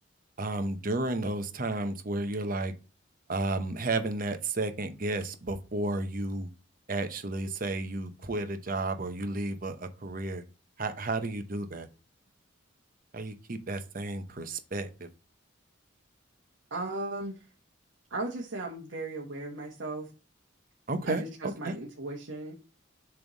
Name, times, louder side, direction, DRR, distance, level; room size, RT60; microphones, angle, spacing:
voice 1, 0.4-2.7 3.3-6.5 6.9-10.4 10.8-11.9 13.1-15.1 20.9-21.2 21.6-21.8, right 2 dB, 45° right, 9 dB, 0.9 m, -32 dB
voice 2, 16.7-17.4 18.1-20.1 21.0-22.6, right 2 dB, 75° right, -2 dB, 1.2 m, -36 dB
7.1 x 3.4 x 4.0 m, 0.32 s
head